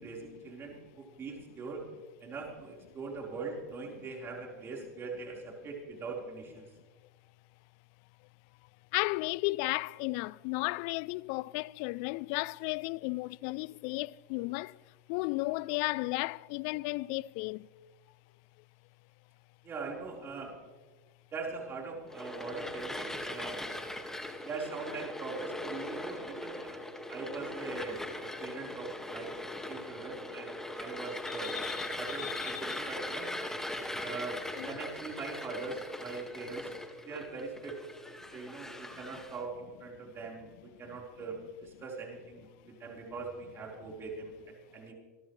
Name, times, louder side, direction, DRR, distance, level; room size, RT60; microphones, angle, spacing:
voice 1, 0.0-1.8 2.2-6.7 19.6-20.5 21.3-23.6 24.4-26.8 27.1-29.3 29.7-31.6 32.0-33.3 34.0-36.7 37.0-37.8 38.3-44.3 44.7-44.9, right 4 dB, 30° right, 4.3 m, -42 dB
voice 2, 8.9-14.7 15.1-17.6 31.3-32.8 34.6-34.7, left 23 dB, 55° left, 0.3 m, -34 dB
sound 1, 22.1-39.4, left 1 dB, 5° left, 1.8 m, -40 dB
26.5 x 13.5 x 3.3 m
hypercardioid pair, 115°, 9 cm